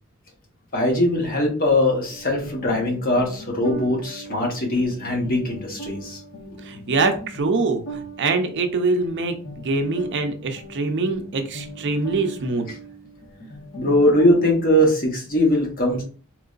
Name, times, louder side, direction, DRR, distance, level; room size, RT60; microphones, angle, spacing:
voice 1, 0.7-6.2 13.8-16.0, left 1 dB, 45° left, 0 dB, 1.2 m, -21 dB
sound 1, 2.0-14.7, right 2 dB, 65° left, 1.2 m, -40 dB
voice 2, 6.6-12.7, right 3 dB, 55° right, 7 dB, 0.5 m, -24 dB
3.7 x 3.0 x 2.5 m, 0.40 s
head